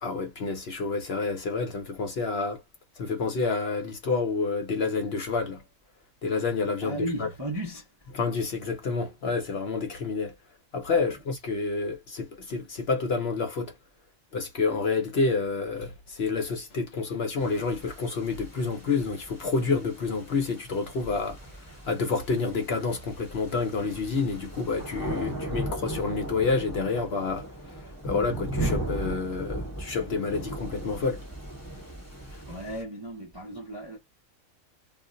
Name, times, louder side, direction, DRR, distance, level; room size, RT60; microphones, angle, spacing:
voice 1, 0.0-2.6 3.0-5.6 6.2-7.3 8.1-10.3 10.7-13.7 14.3-31.2 32.3-32.4, left 4 dB, 55° left, 0.8 m, -29 dB
voice 2, 6.8-8.1 32.5-34.0, right 1 dB, 25° right, 0.5 m, -35 dB
sound 1, 17.4-32.8, right 1 dB, 15° left, 0.8 m, -37 dB
2.4 x 2.1 x 3.7 m
omnidirectional pair, 1.4 m